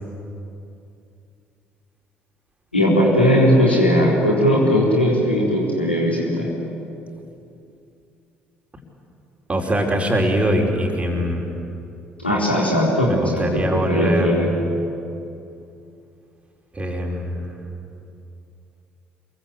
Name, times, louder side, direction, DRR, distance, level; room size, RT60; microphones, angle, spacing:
voice 1, 2.7-6.5 12.2-14.5, equal, 85° left, -3 dB, 4.1 m, -18 dB
voice 2, 9.5-11.5 13.1-14.4 16.7-17.5, equal, 20° right, 1 dB, 4.8 m, -22 dB
27.0 x 23.0 x 8.5 m, 2.7 s
figure-of-eight pair, 50°, 6 cm